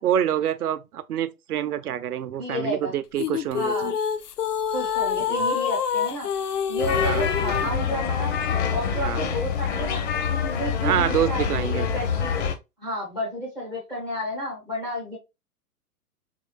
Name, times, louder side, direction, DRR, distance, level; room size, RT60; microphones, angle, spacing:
voice 1, 0.0-3.9 5.3-5.4 7.0-7.2 9.0-9.2 10.8-11.9, right 10 dB, 75° right, 0.6 m, -26 dB
voice 2, 2.4-2.9 3.5-3.9 4.7-6.3 6.7-8.3 8.7-10.0 10.6-12.4 12.8-15.2, equal, 5° left, 0.3 m, -31 dB
sound 1, 3.2-7.7, left 7 dB, 80° left, 0.6 m, -27 dB
sound 2, 6.8-12.6, left 6 dB, 45° left, 0.8 m, -26 dB
3.6 x 3.2 x 2.2 m
figure-of-eight pair, 115°, 46 cm